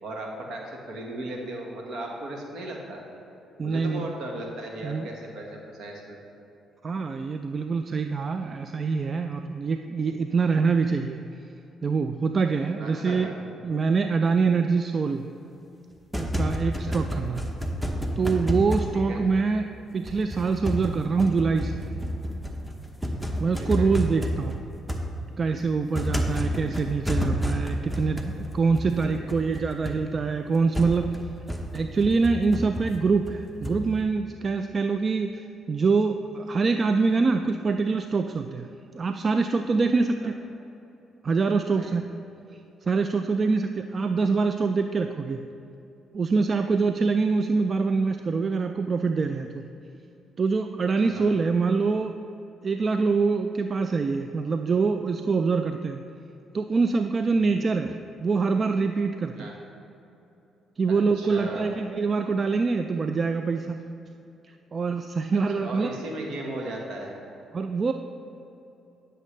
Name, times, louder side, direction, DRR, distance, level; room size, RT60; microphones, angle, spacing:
voice 1, 0.0-3.0 3.6-6.2 12.8-13.3 16.9-17.0 18.9-19.2 23.6-23.9 26.4-26.7 29.0-29.3 41.7-41.9 51.0-51.4 57.3-57.6 59.3-59.6 61.1-61.8 65.3-67.2, right 1 dB, 70° right, 0 dB, 1.4 m, -37 dB
voice 2, 3.6-4.1 4.8-5.1 6.8-11.2 11.8-13.3 13.6-15.3 16.2-17.4 18.2-21.9 23.4-24.6 25.4-31.3 31.7-38.7 38.9-40.4 41.2-42.1 42.8-45.4 46.1-49.6 50.4-52.2 52.6-56.0 56.5-59.6 60.8-63.8 64.4-65.9 67.5-67.9, right 4 dB, 45° right, 7 dB, 0.3 m, -25 dB
sound 1, 15.9-19.7 20.0-34.0, equal, 5° right, 1.0 m, -31 dB
9.8 x 6.7 x 3.2 m, 3.0 s
supercardioid pair, 60°, 0 cm